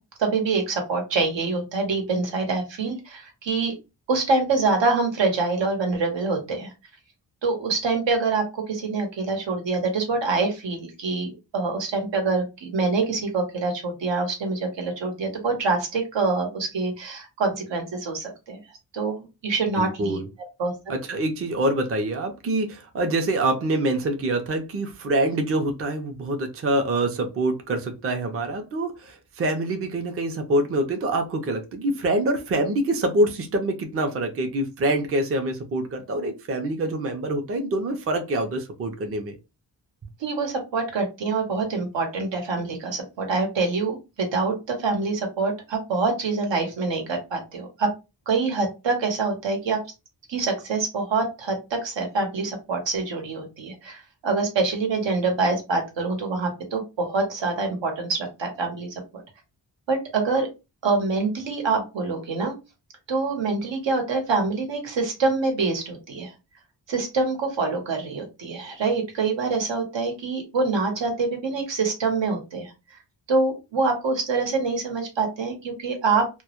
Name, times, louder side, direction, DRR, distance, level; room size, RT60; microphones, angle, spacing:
voice 1, 0.2-3.8 4.1-6.7 7.4-18.6 18.9-20.2 20.6-20.7 40.2-47.9 48.3-49.8 50.3-58.9 59.9-60.5 60.8-62.5 63.1-66.3 66.9-73.0 73.3-76.3, right 3 dB, 85° right, 0.9 m, -25 dB
voice 2, 19.8-20.3 20.9-39.4, right 1 dB, 35° right, 0.4 m, -25 dB
2.2 x 2.0 x 2.8 m
wide cardioid pair, 130°, 43 cm